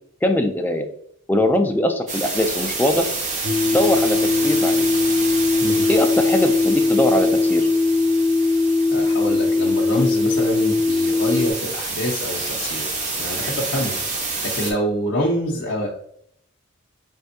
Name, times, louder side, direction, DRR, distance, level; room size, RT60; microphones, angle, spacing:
voice 1, 0.2-0.9 1.3-3.0 3.7-4.9 5.9-7.7, left 1 dB, 10° left, 4 dB, 0.4 m, -21 dB
sound 1, 2.1-14.7, right 3 dB, 35° right, 0.7 m, -29 dB
sound 2, 3.4-11.5, left 3 dB, 70° right, 0.9 m, -20 dB
voice 2, 8.9-12.9 13.2-15.9, equal, 60° left, -5 dB, 0.7 m, -26 dB
4.2 x 3.4 x 2.7 m, 0.67 s
head